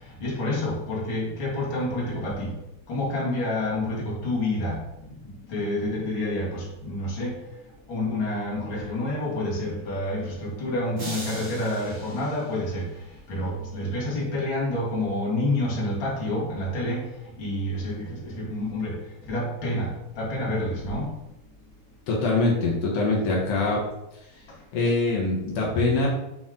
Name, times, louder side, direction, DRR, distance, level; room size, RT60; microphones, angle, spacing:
voice 1, 0.2-2.5 2.9-7.4 7.9-12.9 13.3-17.1 17.4-19.0 19.3-21.1, left 1 dB, 40° left, -5 dB, 2.2 m, -28 dB
sound 1, 11.0-13.2, right 1 dB, 45° right, 1.1 m, -40 dB
voice 2, 22.1-23.8 24.7-26.1, left 3 dB, 80° left, -3 dB, 1.3 m, -23 dB
7.5 x 4.4 x 3.8 m, 0.90 s
omnidirectional pair, 4.5 m